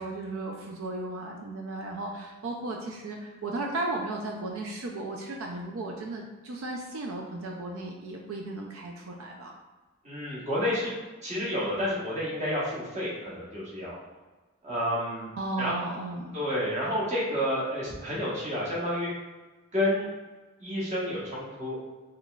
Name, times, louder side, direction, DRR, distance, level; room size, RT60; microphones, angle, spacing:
voice 1, 0.0-9.5 15.4-16.3, right 2 dB, 80° right, 0 dB, 0.4 m, -35 dB
voice 2, 10.0-10.9 11.2-14.0 14.6-15.3 15.6-15.7 16.3-19.1 19.7-20.1 20.6-21.8, left 1 dB, 30° right, -7 dB, 1.1 m, -30 dB
3.9 x 3.2 x 2.3 m, 1.2 s
head